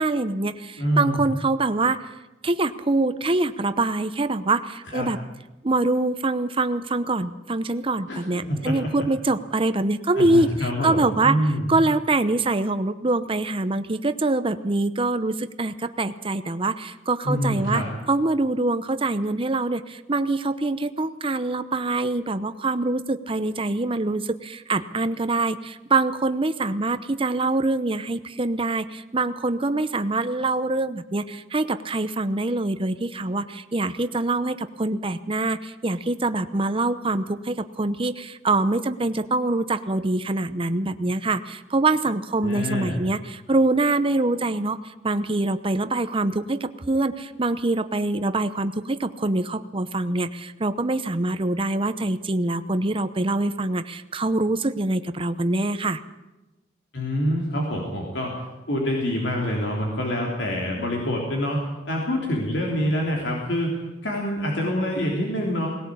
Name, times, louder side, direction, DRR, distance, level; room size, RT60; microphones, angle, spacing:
voice 1, 0.0-2.0 2.4-5.2 5.6-11.4 11.7-56.0, right 2 dB, 30° right, 10 dB, 0.9 m, -24 dB
voice 2, 0.8-1.2 4.9-5.1 8.1-9.0 10.1-11.7 17.2-17.9 42.4-43.0 56.9-58.3 58.7-61.6 61.9-63.7 64.0-65.7, equal, 80° left, -1 dB, 3.5 m, -26 dB
19.5 x 18.0 x 8.6 m, 1.0 s
head